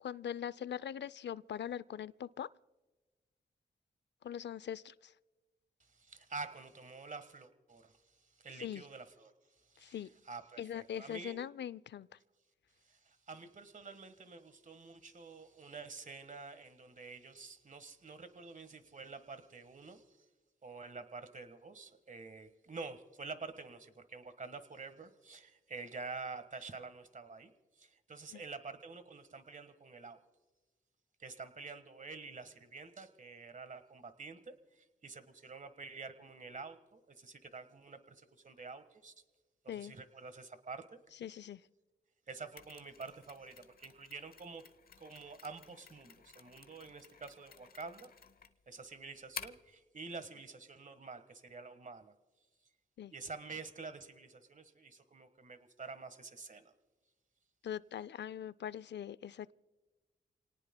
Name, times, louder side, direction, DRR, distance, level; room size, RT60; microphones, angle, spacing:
voice 1, 0.0-2.5 4.2-5.1 8.5-8.8 9.8-10.1 10.6-12.1 28.3-28.4 39.7-39.9 41.2-41.6 53.0-53.1 57.6-59.5, left 9 dB, 65° left, 19 dB, 0.5 m, -42 dB
voice 2, 5.9-9.3 9.7-10.0 10.2-11.4 12.8-20.2 20.6-27.5 27.8-30.2 31.2-39.1 39.6-41.0 42.3-44.6 45.0-48.1 48.7-52.1 53.1-56.7, right 4 dB, 40° right, 11 dB, 1.5 m, -48 dB
Mechanisms, 42.6-49.7, left 5 dB, 50° left, 0.9 m, -52 dB
29.0 x 18.5 x 2.2 m, 1.2 s
cardioid pair, 55°, 19 cm